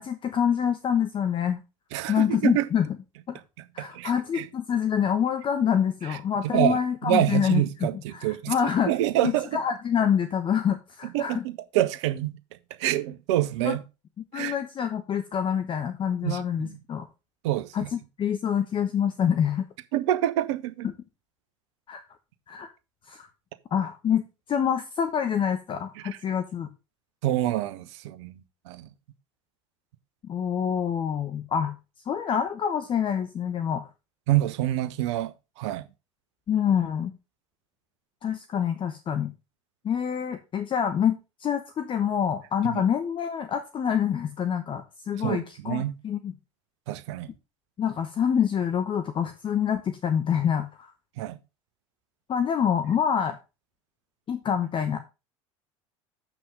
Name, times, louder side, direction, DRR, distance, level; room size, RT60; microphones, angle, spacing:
voice 1, 0.0-1.6 2.1-2.9 3.3-3.4 3.7-8.9 9.2-11.4 13.6-13.8 14.3-17.1 17.7-19.7 20.8-20.9 21.9-22.0 22.5-22.7 23.1-23.3 23.7-26.7 30.2-31.7 32.1-33.9 36.5-37.1 38.2-39.3 39.8-46.3 47.8-50.9 52.3-53.4 54.3-55.0, left 8 dB, 30° left, 1.0 m, -26 dB
voice 2, 1.9-2.7 3.8-4.5 6.1-6.2 6.5-8.5 8.9-9.6 11.1-12.3 12.8-13.8 14.3-14.5 16.2-16.8 17.4-17.9 19.9-20.9 27.2-28.4 28.7-28.9 34.3-35.9 42.7-42.8 45.2-46.0 46.9-47.3 51.2-51.4, right 14 dB, 60° right, 1.0 m, -27 dB
7.5 x 6.0 x 5.1 m
figure-of-eight pair, 75°, 16 cm